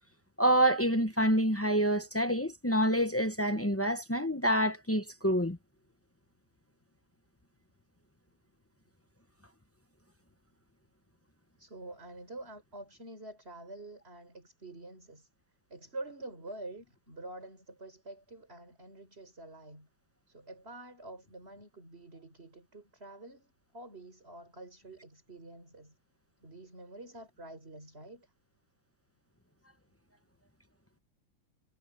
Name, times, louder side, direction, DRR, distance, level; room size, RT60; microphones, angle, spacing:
voice 1, 0.4-5.6, right 1 dB, 20° left, 0.4 m, -27 dB
voice 2, 11.6-15.3 15.7-19.9 20.3-26.0 26.4-28.3, right 2 dB, 30° right, 5.1 m, -47 dB
omnidirectional pair, 2.1 m